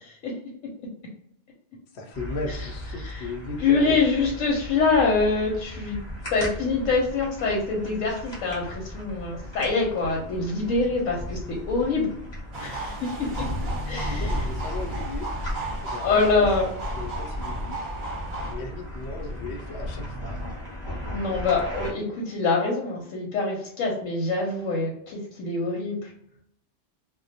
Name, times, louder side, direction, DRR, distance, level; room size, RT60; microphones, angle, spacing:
voice 1, 1.9-4.3 13.9-15.3 15.8-16.5 17.0-17.8 18.4-20.4, left 2 dB, 65° left, 2 dB, 0.8 m, -36 dB
sound 1, 2.1-21.9, left 1 dB, 25° left, 0.8 m, -35 dB
voice 2, 3.6-6.0 6.3-11.4 11.7-12.1 12.6-12.9 13.9-14.3 16.0-16.7 21.0-26.1, left 4 dB, 85° left, -2 dB, 1.0 m, -25 dB
sound 2, 12.5-18.5, right 2 dB, 50° right, 0.8 m, -36 dB
2.2 x 2.1 x 2.6 m, 0.71 s
omnidirectional pair, 1.3 m